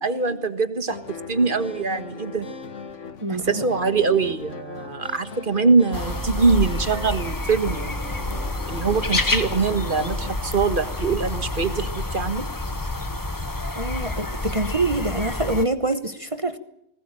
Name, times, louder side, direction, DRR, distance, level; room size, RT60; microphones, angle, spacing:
voice 1, 0.0-1.0 1.3-2.5 3.3-7.8 8.7-12.4, right 4 dB, 45° right, 10 dB, 1.7 m, -23 dB
sound 1, 0.9-10.3, left 4 dB, 85° left, 1.6 m, -39 dB
voice 2, 3.2-3.7 13.8-16.6, right 2 dB, 30° right, 10 dB, 1.1 m, -25 dB
sound 2, 5.9-15.6, left 2 dB, 20° left, 1.1 m, -28 dB
20.5 x 19.5 x 9.0 m, 0.79 s
omnidirectional pair, 1.2 m